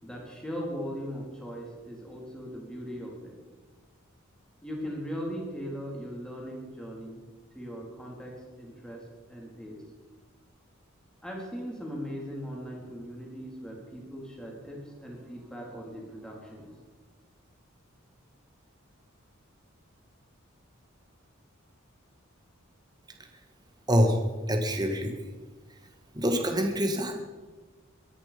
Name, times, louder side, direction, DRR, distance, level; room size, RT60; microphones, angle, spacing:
voice 1, 0.0-3.3 4.6-7.2 7.5-8.3 8.6-9.0 9.3-9.8 11.2-16.7, equal, 5° left, -2 dB, 4.0 m, -39 dB
voice 2, 23.9-24.2 24.5-25.1 26.2-27.2, equal, 20° right, 4 dB, 1.8 m, -25 dB
22.5 x 10.5 x 5.3 m, 1.3 s
head